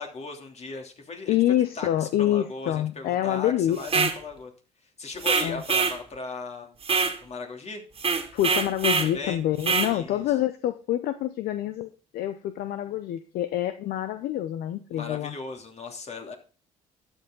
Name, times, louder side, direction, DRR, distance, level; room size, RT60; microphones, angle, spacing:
voice 1, 0.0-1.4 1.7-4.5 5.0-6.8 7.2-7.8 9.0-9.4 9.8-10.2 14.9-16.3, left 3 dB, 40° left, 3 dB, 3.0 m, -37 dB
voice 2, 1.3-4.1 5.4-5.6 8.3-15.3, left 12 dB, 65° left, 11 dB, 0.7 m, -27 dB
sound 1, 3.8-4.2 5.2-6.0 6.8-7.2 8.0-9.1 9.6-9.9, right 5 dB, 35° right, 2.0 m, -24 dB
12.0 x 8.0 x 3.8 m, 0.37 s
hypercardioid pair, 60°, 17 cm